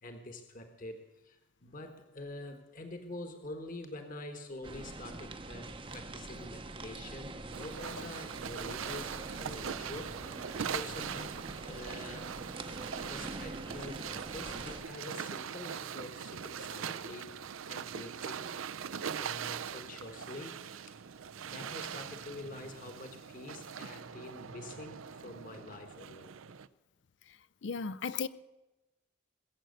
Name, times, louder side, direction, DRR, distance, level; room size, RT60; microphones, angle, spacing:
voice 1, 0.0-10.1 10.7-11.3 11.6-12.3 13.0-18.4 19.2-20.5 21.4-26.3, left 2 dB, 40° left, 1.3 m, -46 dB
sound 1, 4.6-14.8, right 2 dB, 25° right, 0.7 m, -44 dB
sound 2, 7.5-26.7, right 7 dB, 80° right, 0.5 m, -41 dB
voice 2, 27.6-28.3, left 5 dB, 60° left, 0.5 m, -35 dB
20.5 x 7.7 x 7.9 m
head